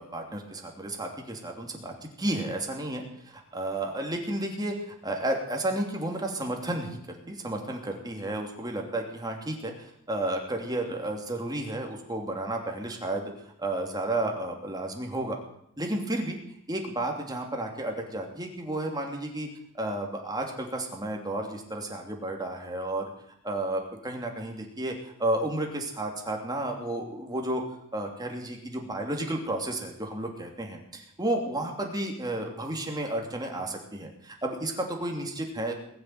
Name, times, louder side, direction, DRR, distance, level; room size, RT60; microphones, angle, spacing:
voice 1, 0.0-7.0 7.3-13.3 13.6-15.4 15.8-16.4 16.7-19.5 19.7-23.1 23.4-27.6 27.9-35.7, right 1 dB, 20° right, 2 dB, 2.9 m, -32 dB
20.5 x 7.6 x 9.2 m, 0.73 s
head